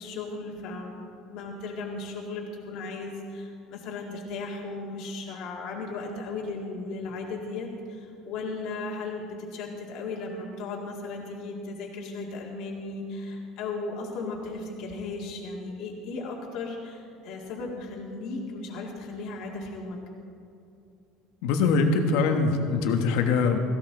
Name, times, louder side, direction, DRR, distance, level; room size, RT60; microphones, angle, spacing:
voice 1, 0.0-20.0, left 3 dB, 55° left, -2 dB, 2.0 m, -36 dB
voice 2, 21.4-23.6, left 4 dB, 75° left, 5 dB, 1.3 m, -23 dB
17.5 x 15.5 x 3.9 m, 2.5 s
cardioid pair, 155°, 0 cm